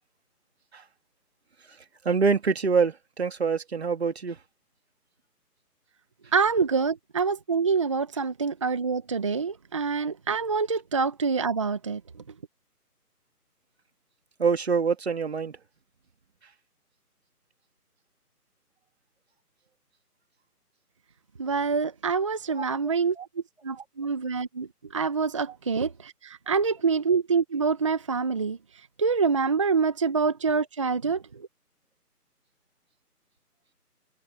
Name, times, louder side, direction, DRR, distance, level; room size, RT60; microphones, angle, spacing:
voice 1, 2.0-4.4 14.4-15.5 22.6-22.7 23.2-23.3, right 5 dB, 40° right, 2.6 m, -25 dB
voice 2, 6.3-12.0 21.4-23.1 23.6-24.7 24.9-28.6 29.0-31.2, right 5 dB, 20° right, 1.4 m, -26 dB
figure-of-eight pair, 165°, 47 cm